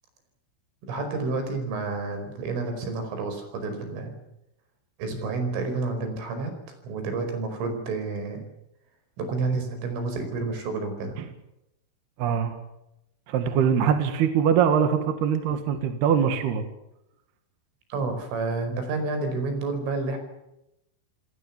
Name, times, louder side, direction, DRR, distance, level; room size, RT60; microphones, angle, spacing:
voice 1, 0.9-4.1 5.0-6.5 6.8-8.4 9.2-11.2 17.9-20.2, right 3 dB, 80° right, 7 dB, 7.5 m, -29 dB
voice 2, 12.2-12.6 13.3-16.7, right 8 dB, 60° right, 7 dB, 3.5 m, -23 dB
28.5 x 19.0 x 7.2 m, 0.86 s
omnidirectional pair, 5.6 m